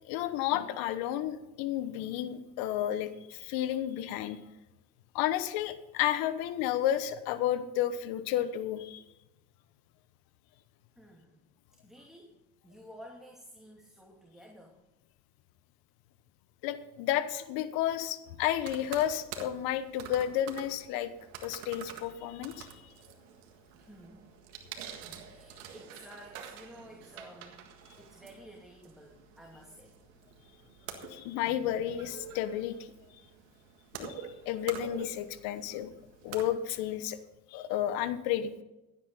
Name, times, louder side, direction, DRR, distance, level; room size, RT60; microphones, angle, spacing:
voice 1, 0.1-4.4 5.1-9.0 16.6-21.1 21.4-22.7 31.1-32.8 34.0-35.9 36.2-37.2 37.5-38.6, left 11 dB, 75° left, 13 dB, 1.1 m, -32 dB
voice 2, 11.0-11.4 11.7-14.8 23.7-24.3 25.0-29.9, equal, ahead, -1 dB, 2.8 m, -53 dB
sound 1, 18.6-37.0, right 8 dB, 85° right, 1.8 m, -47 dB
16.0 x 9.6 x 4.1 m, 0.99 s
hypercardioid pair, 60°, 37 cm